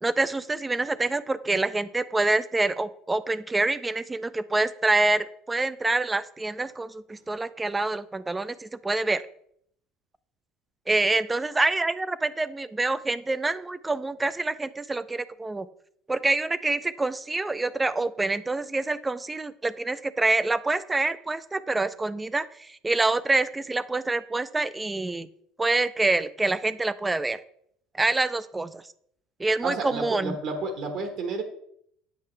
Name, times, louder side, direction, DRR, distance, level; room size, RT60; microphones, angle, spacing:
voice 1, 0.0-9.2 10.9-15.7 16.1-25.3 25.6-27.4 27.9-28.8 29.4-30.3, right 2 dB, 15° right, 16 dB, 0.3 m, -26 dB
voice 2, 29.6-31.4, right 3 dB, 55° right, 6 dB, 1.3 m, -31 dB
8.4 x 5.6 x 3.2 m, 0.68 s
supercardioid pair, 115°, 0 cm